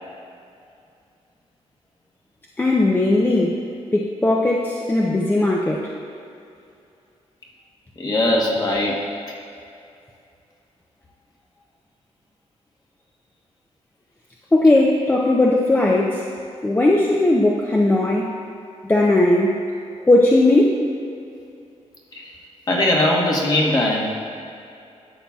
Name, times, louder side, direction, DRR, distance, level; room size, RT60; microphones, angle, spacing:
voice 1, 2.6-3.6 3.9-5.8 14.5-16.2 16.6-18.3 18.9-19.5 20.1-20.7, left 2 dB, 15° left, -2 dB, 0.5 m, -17 dB
voice 2, 8.0-9.0 22.1-22.3 22.7-24.1, left 1 dB, 35° left, -2 dB, 1.2 m, -20 dB
11.5 x 6.9 x 2.3 m, 2.6 s
cardioid pair, 120°, 12 cm